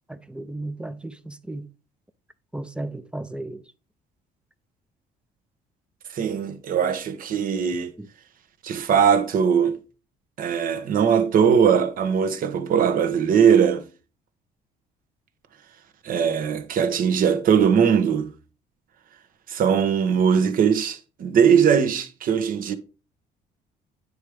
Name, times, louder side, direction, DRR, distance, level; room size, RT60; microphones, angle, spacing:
voice 1, 0.1-1.7 2.5-3.6 8.0-8.1, right 2 dB, 5° right, 0.6 m, -34 dB
voice 2, 6.1-7.9 8.6-9.8 10.4-13.9 16.0-18.3 19.5-22.7, right 7 dB, 55° right, 1.1 m, -20 dB
9.4 x 3.5 x 4.8 m
cardioid pair, 110°, 17 cm